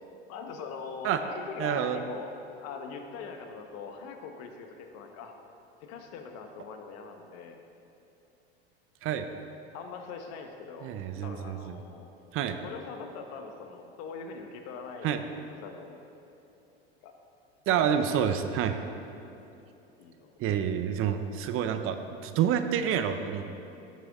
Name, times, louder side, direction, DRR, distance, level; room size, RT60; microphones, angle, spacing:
voice 1, 0.3-2.3 2.6-5.3 5.8-7.6 9.7-12.1 12.6-16.3 17.0-17.1 17.7-18.1 20.0-20.3, left 5 dB, 55° left, 5 dB, 1.2 m, -42 dB
voice 2, 1.6-2.0 9.0-9.3 10.8-11.8 12.3-12.6 15.0-15.2 17.7-18.8 20.4-23.5, right 9 dB, 45° right, 8 dB, 0.7 m, -28 dB
14.5 x 6.4 x 3.6 m, 2.9 s
hypercardioid pair, 95°, 31 cm